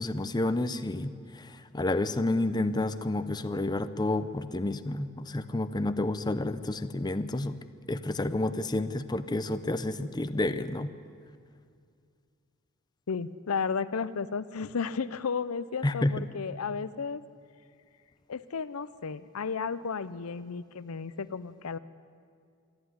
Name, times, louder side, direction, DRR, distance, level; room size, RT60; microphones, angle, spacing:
voice 1, 0.0-7.6 7.9-10.9 15.8-16.3, left 2 dB, 20° left, 11 dB, 0.6 m, -30 dB
voice 2, 13.1-17.2 18.3-21.8, left 5 dB, 80° left, 15 dB, 0.6 m, -33 dB
26.0 x 11.5 x 9.7 m, 2.2 s
head